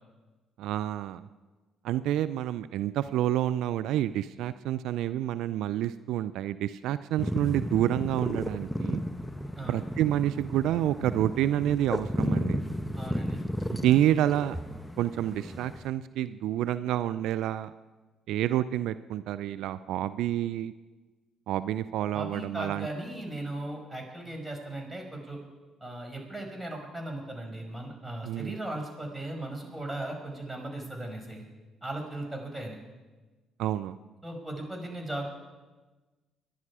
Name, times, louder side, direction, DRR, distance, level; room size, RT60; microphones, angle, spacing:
voice 1, 0.6-1.3 1.8-9.0 9.7-12.6 13.7-14.6 15.0-17.7 18.3-20.7 21.5-22.9 28.2-28.6 33.6-34.0, right 12 dB, 75° right, 14 dB, 0.4 m, -28 dB
sound 1, 7.2-15.9, equal, 10° left, 1.2 m, -33 dB
voice 2, 13.0-13.4 22.1-25.4 25.8-31.5 31.8-32.8 34.2-35.3, right 1 dB, 10° right, 2 dB, 5.5 m, -37 dB
25.0 x 11.0 x 4.9 m, 1.3 s
hypercardioid pair, 55°, 0 cm